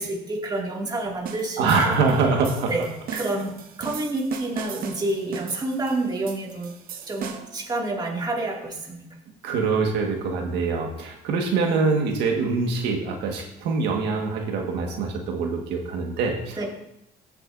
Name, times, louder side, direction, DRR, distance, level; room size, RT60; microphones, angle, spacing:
voice 1, 0.0-1.7 2.7-2.9 3.1-6.7 7.1-9.0 16.6-16.7, right 2 dB, 25° right, -1 dB, 2.3 m, -28 dB
sound 1, 1.3-7.6, right 7 dB, 60° right, 1.1 m, -38 dB
voice 2, 1.6-2.7 9.4-16.7, right 4 dB, 85° right, 1 dB, 1.7 m, -24 dB
14.0 x 8.0 x 2.6 m, 0.80 s
cardioid pair, 110°, 17 cm